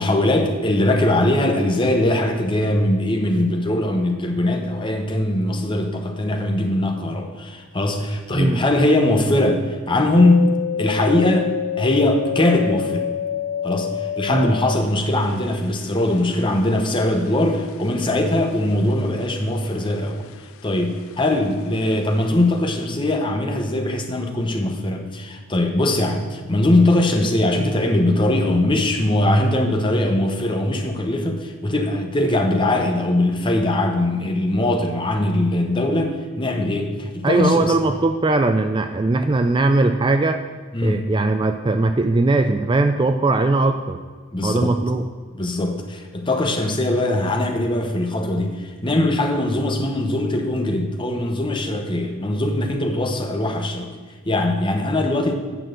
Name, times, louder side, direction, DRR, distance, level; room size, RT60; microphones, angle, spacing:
voice 1, 0.0-11.5 11.8-13.1 13.6-20.3 20.6-37.9 40.7-41.1 44.3-44.8 45.3-53.9 54.3-55.3, left 1 dB, 20° left, 4 dB, 0.9 m, -21 dB
sound 1, 10.1-19.5 19.8-20.7 21.0-21.9 22.3-22.4, left 8 dB, 70° left, 0.3 m, -29 dB
voice 2, 37.2-40.4 40.8-44.0 44.4-45.0, right 2 dB, 20° right, 8 dB, 0.3 m, -19 dB
9.1 x 6.3 x 7.6 m, 1.5 s
head